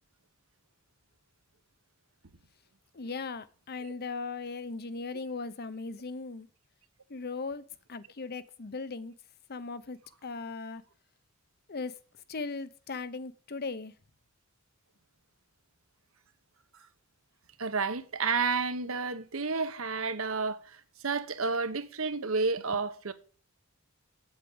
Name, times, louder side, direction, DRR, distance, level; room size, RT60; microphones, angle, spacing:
voice 1, 2.9-6.5 7.1-7.6 7.9-9.1 9.5-10.8 11.7-12.0 12.3-13.9, left 4 dB, 50° left, 0.8 m, -38 dB
voice 2, 17.6-23.1, right 4 dB, 75° right, 1.2 m, -31 dB
8.3 x 8.2 x 7.9 m
head